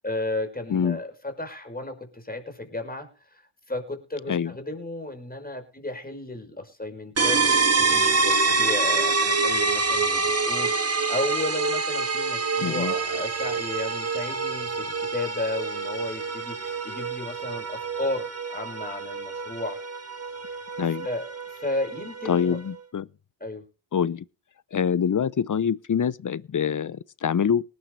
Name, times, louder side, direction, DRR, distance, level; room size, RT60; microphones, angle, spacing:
voice 1, 0.0-3.4 3.7-7.4 7.8-19.8 20.5-20.6 21.0-22.6 23.4-23.6, left 2 dB, 20° left, 5.5 m, -34 dB
sound 1, 7.2-22.7, right 4 dB, 30° right, 2.2 m, -26 dB
voice 2, 12.6-12.9 20.8-21.0 22.3-23.1 23.9-24.2 24.7-27.6, left 7 dB, 40° left, 0.7 m, -25 dB
19.5 x 11.5 x 3.3 m
cardioid pair, 65°, 50 cm